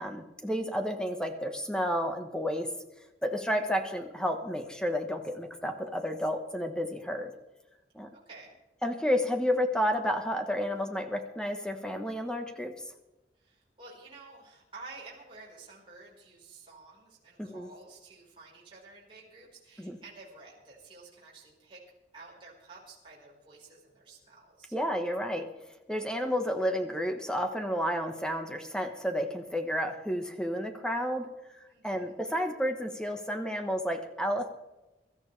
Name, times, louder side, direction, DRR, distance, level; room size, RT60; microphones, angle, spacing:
voice 1, 0.0-2.7 3.2-7.3 7.9-8.1 8.8-12.9 17.4-17.7 19.8-20.0 24.7-25.5 25.9-31.3 31.8-34.5, equal, 5° left, 5 dB, 1.3 m, -31 dB
voice 2, 13.4-21.8 22.1-24.7 31.7-32.1, right 3 dB, 30° right, -6 dB, 4.7 m, -51 dB
23.0 x 13.5 x 3.4 m, 1.0 s
head